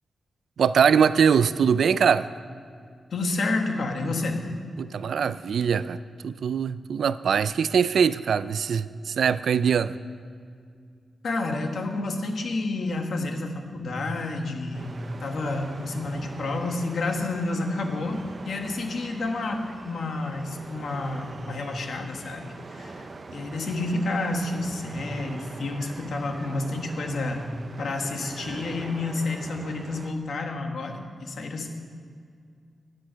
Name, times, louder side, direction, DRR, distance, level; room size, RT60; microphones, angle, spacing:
voice 1, 0.6-2.3 4.8-10.0, right 7 dB, 70° right, 15 dB, 0.4 m, -22 dB
voice 2, 3.1-4.4 11.2-27.5 27.8-31.7, left 2 dB, 60° left, 3 dB, 1.5 m, -30 dB
sound 1, 14.7-30.1, right 3 dB, 35° right, 0.7 m, -43 dB
15.5 x 9.7 x 5.8 m, 2.2 s
wide cardioid pair, 175°, 0 cm